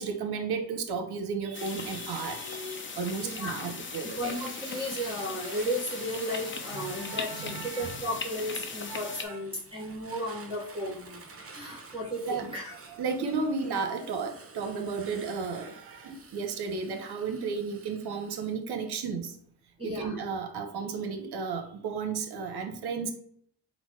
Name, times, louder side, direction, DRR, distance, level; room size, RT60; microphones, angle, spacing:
voice 1, 0.0-4.3 6.7-8.0 8.9-9.0 9.3-9.4 12.2-12.5 13.0-19.3 19.8-23.1, right 5 dB, 55° right, 6 dB, 0.9 m, -33 dB
sound 1, 1.5-9.2, left 4 dB, 25° left, 0.8 m, -39 dB
voice 2, 3.2-3.7 4.1-11.2 11.5-12.7 19.8-20.2, equal, 10° right, -5 dB, 1.5 m, -34 dB
Fire, 3.9-18.5, right 4 dB, 30° right, 0.9 m, -49 dB
4.0 x 2.2 x 4.4 m, 0.63 s
hypercardioid pair, 40°, 46 cm